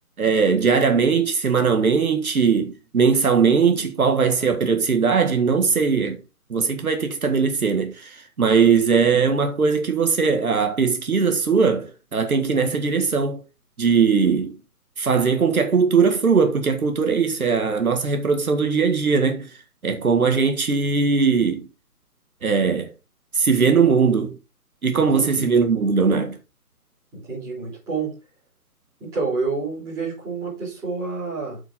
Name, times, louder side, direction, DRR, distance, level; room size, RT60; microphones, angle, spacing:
voice 1, 0.2-6.2 6.5-13.4 13.8-14.5 15.0-19.6 19.8-21.7 22.4-22.9 23.3-24.4 24.8-26.4, right 5 dB, 65° right, 1.8 m, -20 dB
voice 2, 24.9-25.5 27.1-28.1 29.0-31.6, right 4 dB, 5° right, 3.8 m, -29 dB
8.3 x 6.1 x 3.6 m
hypercardioid pair, 170°, 45 cm